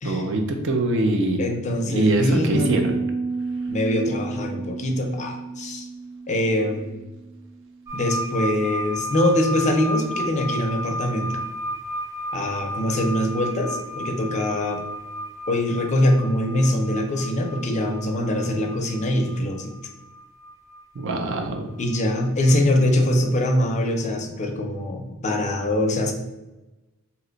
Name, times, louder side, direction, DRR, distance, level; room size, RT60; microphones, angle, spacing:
voice 1, 0.0-1.4 1.9-3.0 20.9-21.7, right 2 dB, 65° right, 4 dB, 0.5 m, -23 dB
voice 2, 1.4-2.8 3.7-5.9 6.3-7.0 7.9-11.3 12.3-14.8 15.5-19.7 21.8-26.1, left 1 dB, 35° left, 3 dB, 0.4 m, -23 dB
Piano, 2.5-8.1, right 4 dB, 90° right, 1.4 m, -32 dB
sound 1, 7.9-22.8 23.6-23.7, equal, 15° right, 0.7 m, -34 dB
2.8 x 2.1 x 3.8 m, 1.1 s
head